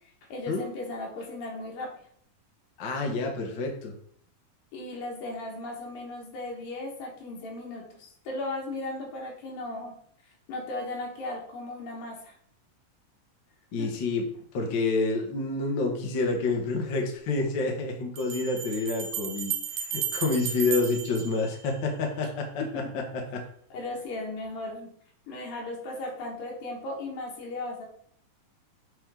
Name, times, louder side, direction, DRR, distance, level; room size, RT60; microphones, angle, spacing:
voice 1, 0.3-1.9 4.7-10.0 10.5-12.4 13.8-13.9 22.6-23.0 23.7-24.9 25.3-27.8, left 2 dB, 85° left, -1 dB, 3.4 m, -36 dB
voice 2, 2.8-4.0 13.7-14.3 14.5-23.4, left 3 dB, 60° left, 2 dB, 1.1 m, -28 dB
Bell, 16.5-16.6 18.2-22.1, right 9 dB, 75° right, 1.6 m, -34 dB
7.3 x 4.8 x 3.7 m, 0.63 s
omnidirectional pair, 3.9 m